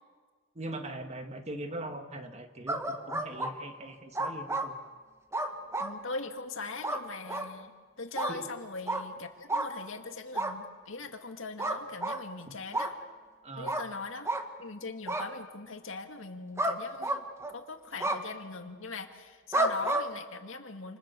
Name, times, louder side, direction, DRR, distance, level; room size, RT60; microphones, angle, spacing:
voice 1, 0.6-4.7 8.3-8.5 13.4-13.7, right 1 dB, 35° right, 6 dB, 2.0 m, -41 dB
sound 1, 2.7-3.5 4.2-4.7 5.3-5.9 6.8-7.0 7.3-7.5 8.2-8.3 8.9-9.0 9.5-9.7 10.4-10.5 11.6-12.2 12.7-12.9 13.7-13.9 14.3-14.4 15.1-15.3 16.6-16.8 17.0-17.5 18.0-18.2 19.5-20.0, right 2 dB, 15° right, 1.8 m, -30 dB
voice 2, 5.8-7.7 8.0-12.9 13.6-14.3 14.6-21.0, left 3 dB, 70° left, 5 dB, 2.2 m, -41 dB
28.5 x 28.5 x 7.0 m, 1.5 s
head